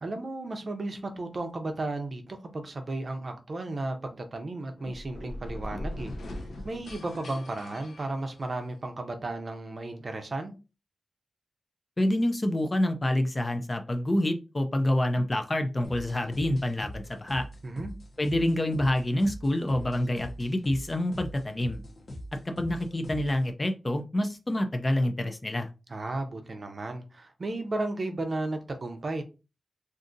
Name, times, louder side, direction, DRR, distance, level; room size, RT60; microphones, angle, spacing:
voice 1, 0.0-6.1 6.6-10.5 17.6-17.9 25.9-29.2, right 2 dB, 40° right, 0.6 m, -34 dB
sound 1, 4.8-8.8, left 1 dB, 80° left, 0.6 m, -40 dB
voice 2, 12.0-17.5 18.2-21.8 22.5-25.7, left 1 dB, 25° left, 0.4 m, -27 dB
sound 2, 15.8-23.5, equal, 50° left, 0.9 m, -43 dB
2.6 x 2.5 x 3.8 m
wide cardioid pair, 160°, 0 cm